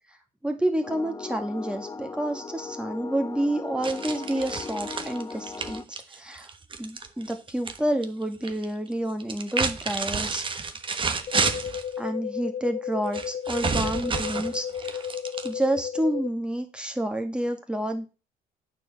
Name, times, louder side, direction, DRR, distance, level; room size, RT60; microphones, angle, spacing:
voice 1, 0.4-5.8 6.1-10.7 12.0-15.0 15.4-18.1, right 1 dB, 5° right, 4 dB, 1.9 m, -29 dB
sound 1, 0.8-5.8, left 4 dB, 20° left, 0.5 m, -38 dB
sound 2, 3.8-7.8 8.0-8.6 9.2-11.9 13.1-15.8, right 5 dB, 30° right, 1.2 m, -30 dB
sound 3, 11.3-16.3, left 8 dB, 50° left, 1.2 m, -33 dB
9.0 x 4.7 x 7.4 m, 0.31 s
cardioid pair, 110°, 17 cm